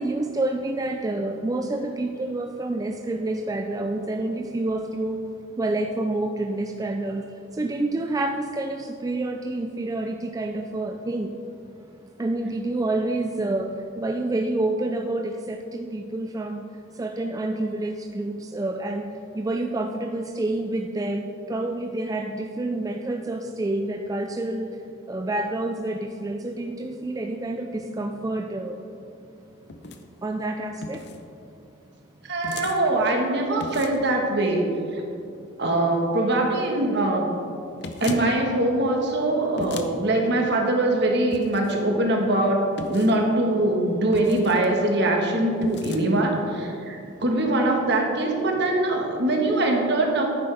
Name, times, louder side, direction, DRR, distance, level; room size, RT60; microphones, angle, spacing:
voice 1, 0.0-11.4 11.8-11.9 12.2-24.8 25.1-28.9 30.2-31.2 46.8-47.2, right 2 dB, 20° right, 3 dB, 0.3 m, -28 dB
sound 1, 29.7-30.0 30.8-31.2 32.4-32.8 33.6-34.1 37.8-38.3 39.6-39.9 41.3-41.7 42.8-43.2 44.1-44.7 45.6-46.0, left 3 dB, 60° left, 0.7 m, -36 dB
voice 2, 32.3-35.0 35.6-37.3 38.0-50.3, right 1 dB, 60° right, 1 dB, 1.4 m, -23 dB
10.5 x 9.2 x 3.4 m, 2.6 s
head